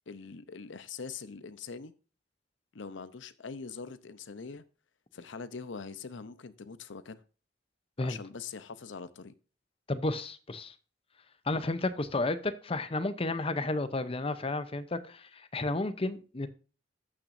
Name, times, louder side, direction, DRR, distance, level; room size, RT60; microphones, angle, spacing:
voice 1, 0.0-1.9 2.7-4.6 5.1-7.2 8.0-9.3, left 5 dB, 85° left, 0.7 m, -43 dB
voice 2, 9.9-10.7 11.5-16.5, left 2 dB, 30° left, 0.7 m, -32 dB
15.0 x 6.0 x 2.6 m
head